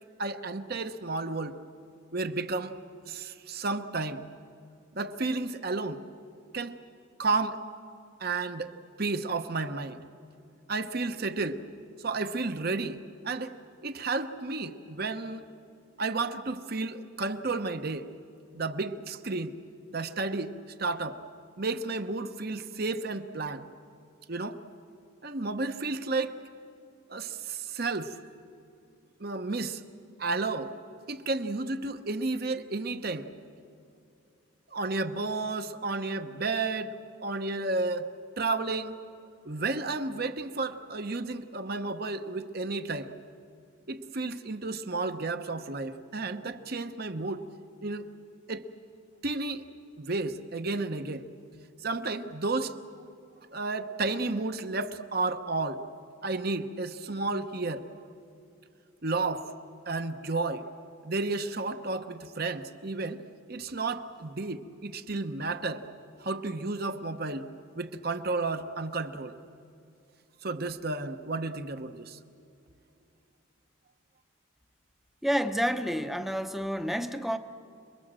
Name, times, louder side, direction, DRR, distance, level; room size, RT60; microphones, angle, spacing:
voice 1, 0.2-1.6 2.1-2.8 3.0-4.2 4.9-6.0 6.5-6.8 7.2-7.6 8.2-10.0 10.7-11.6 12.0-15.4 16.0-18.1 18.5-19.5 19.9-20.5 20.8-21.2 21.6-23.6 24.3-24.6 25.2-26.4 27.1-28.2 29.2-29.8 30.2-30.7 31.1-33.3 34.7-39.0 39.4-43.1 43.9-47.5 47.8-48.1 48.5-48.6 49.2-49.7 50.0-51.3 51.8-52.8 53.5-55.8 56.2-57.9 59.0-59.5 59.9-60.7 61.0-63.2 63.5-65.9 66.2-67.5 67.7-69.4 70.4-72.2, right 3 dB, 50° right, 9 dB, 1.0 m, -32 dB
voice 2, 75.2-77.4, equal, ahead, 8 dB, 0.8 m, -29 dB
28.5 x 22.0 x 7.6 m, 2.6 s
head